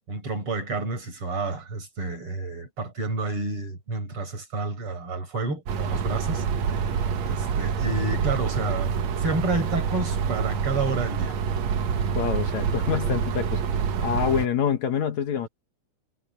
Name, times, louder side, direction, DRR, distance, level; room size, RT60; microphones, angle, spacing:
voice 1, 0.1-6.4 6.8-6.9 7.2-11.4, right 3 dB, 45° right, 6.2 m, -30 dB
sound 1, 5.7-14.5, right 6 dB, 65° right, 2.5 m, -27 dB
voice 2, 12.1-13.6 14.0-15.5, left 8 dB, 65° left, 2.8 m, -26 dB
omnidirectional pair, 3.5 m